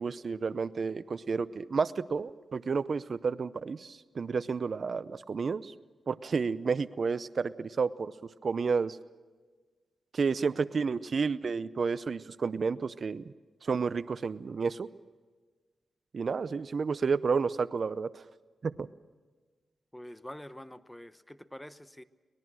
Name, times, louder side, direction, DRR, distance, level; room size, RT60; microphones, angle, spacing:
voice 1, 0.0-5.7 6.1-8.1 8.4-9.0 10.1-13.2 13.6-14.9 16.1-18.2 18.6-18.9, right 5 dB, 60° right, 16 dB, 0.6 m, -31 dB
voice 2, 19.9-22.0, left 1 dB, 10° left, 13 dB, 1.0 m, -46 dB
24.0 x 20.5 x 6.3 m, 1.4 s
cardioid pair, 60°, 0 cm